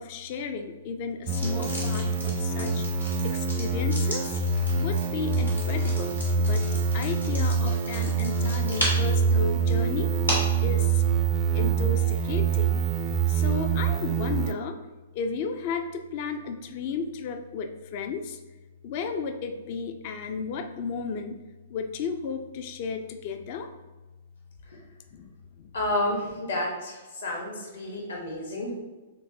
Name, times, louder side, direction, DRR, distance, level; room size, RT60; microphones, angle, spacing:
voice 1, 0.0-2.8 3.2-4.4 4.8-10.1 10.6-11.0 11.5-12.8 13.3-14.8 15.1-18.4 18.8-21.4 21.7-23.7 25.1-25.3 25.6-25.7, left 5 dB, 40° left, 7 dB, 0.4 m, -33 dB
sound 1, 1.2-10.6, equal, 85° left, 1.5 m, -36 dB
sound 2, 1.3-14.5, right 5 dB, 30° right, 0.4 m, -25 dB
voice 2, 25.7-28.7, left 1 dB, 65° left, -1 dB, 1.2 m, -30 dB
6.7 x 2.5 x 2.8 m, 1.2 s
figure-of-eight pair, 110°, 0 cm